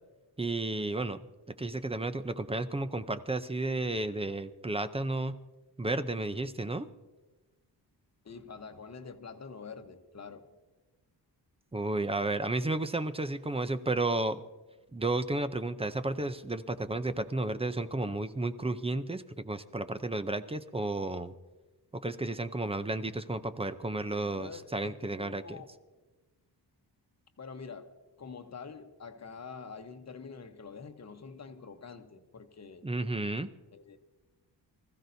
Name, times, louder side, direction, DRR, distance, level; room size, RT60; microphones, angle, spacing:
voice 1, 0.4-1.2 1.6-5.4 5.8-6.9 11.7-14.4 14.9-21.3 22.0-25.6 32.8-33.5, right 2 dB, 15° right, 11 dB, 0.5 m, -32 dB
voice 2, 8.2-10.5 24.4-25.7 27.4-32.9 33.7-34.0, left 5 dB, 40° left, 7 dB, 1.0 m, -46 dB
24.5 x 15.0 x 2.7 m, 1.2 s
wide cardioid pair, 135°, 42 cm